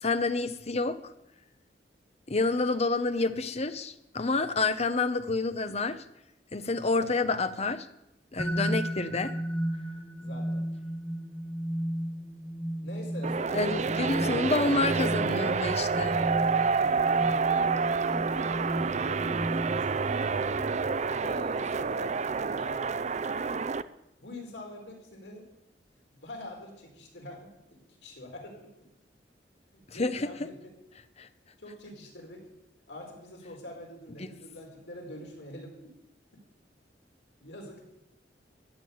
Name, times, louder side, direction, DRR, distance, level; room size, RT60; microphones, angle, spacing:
voice 1, 0.0-1.0 2.3-6.0 6.5-7.9 8.3-9.3 13.5-16.2 29.9-30.3 31.2-31.3, left 3 dB, 35° left, 11 dB, 0.9 m, -28 dB
voice 2, 6.9-7.2 10.2-10.6 12.8-14.6 16.0-16.3 16.7-20.7 21.2-22.9 24.2-25.4 26.2-28.7 29.7-30.7 31.6-32.4 32.9-35.9 37.4-37.9, left 1 dB, 85° left, 1 dB, 4.4 m, -45 dB
sound 1, 8.4-20.1, equal, 5° left, 1.1 m, -34 dB
sound 2, 13.2-23.8, right 5 dB, 40° right, 0.5 m, -28 dB
14.0 x 7.6 x 9.5 m, 0.86 s
head